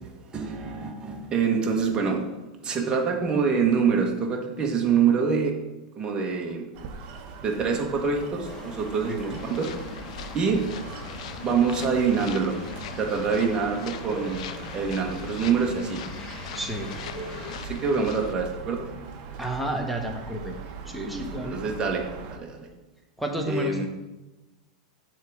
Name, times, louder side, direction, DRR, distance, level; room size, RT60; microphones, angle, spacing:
voice 1, 0.0-5.5 6.0-6.7 7.4-9.7 10.3-10.6 11.4-12.5 13.0-14.4 14.7-16.0 17.6-18.9 21.1-21.2 21.5-22.0 22.3-22.7 23.4-23.9, right 5 dB, 25° right, 1 dB, 1.2 m, -25 dB
sound 1, 6.7-22.4, right 5 dB, 50° right, 0.9 m, -41 dB
sound 2, 8.4-17.6, left 1 dB, 25° left, 2.0 m, -41 dB
sound 3, 9.3-18.3, left 9 dB, 70° left, 0.5 m, -41 dB
voice 2, 16.5-16.9 19.4-20.5 20.9-21.6 23.2-23.8, right 1 dB, ahead, 1 dB, 1.2 m, -30 dB
7.3 x 3.5 x 6.3 m, 1.1 s
hypercardioid pair, 115°, 4 cm